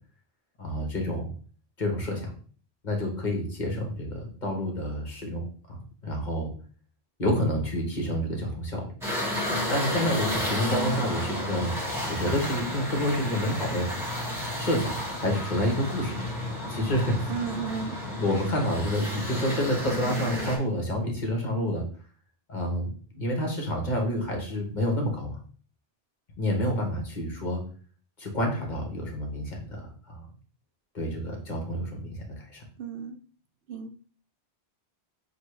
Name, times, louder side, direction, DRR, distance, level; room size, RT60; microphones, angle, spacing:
voice 1, 0.6-1.3 1.8-2.3 2.8-6.5 7.2-8.9 9.7-11.7 12.0-13.9 14.6-17.3 18.2-21.8 22.5-25.4 26.4-27.6 28.2-30.3 30.9-32.6, left 1 dB, 45° left, 1 dB, 1.2 m, -29 dB
sound 1, 9.0-20.6, left 1 dB, ahead, 1.5 m, -32 dB
voice 2, 17.3-18.0 32.8-33.2 33.7-34.0, right 6 dB, 70° right, 7 dB, 0.8 m, -34 dB
6.4 x 2.3 x 3.1 m, 0.43 s
omnidirectional pair, 1.1 m